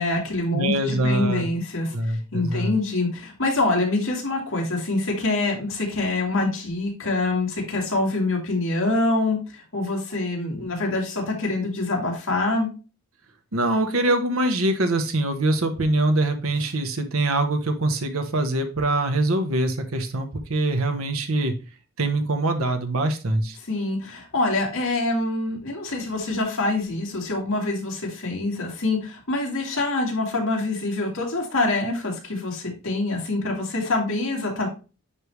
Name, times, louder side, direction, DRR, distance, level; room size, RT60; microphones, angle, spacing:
voice 1, 0.0-12.7 23.7-34.7, left 2 dB, 70° left, 0 dB, 2.1 m, -25 dB
voice 2, 0.5-1.5 1.9-2.7 13.5-21.5 22.0-23.6, right 2 dB, 75° right, 6 dB, 1.0 m, -23 dB
9.8 x 3.4 x 3.2 m, 0.32 s
head